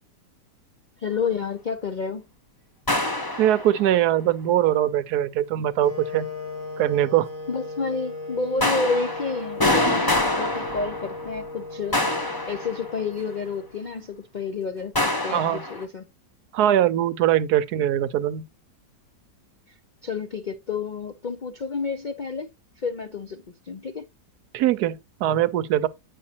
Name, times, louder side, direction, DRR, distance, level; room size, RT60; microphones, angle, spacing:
voice 1, 1.0-2.3 7.5-16.0 20.0-22.5 22.8-24.1, left 4 dB, 75° left, 0.4 m, -30 dB
sound 1, 2.9-4.0 8.6-11.5 11.9-13.3 15.0-15.8, left 1 dB, 20° left, 0.8 m, -26 dB
voice 2, 3.4-6.3 6.8-7.3 15.3-15.6 16.5-18.4 24.5-25.9, right 11 dB, 75° right, 1.1 m, -22 dB
sound 2, 5.8-13.8, left 3 dB, 40° left, 3.5 m, -37 dB
8.5 x 5.4 x 2.8 m
omnidirectional pair, 1.8 m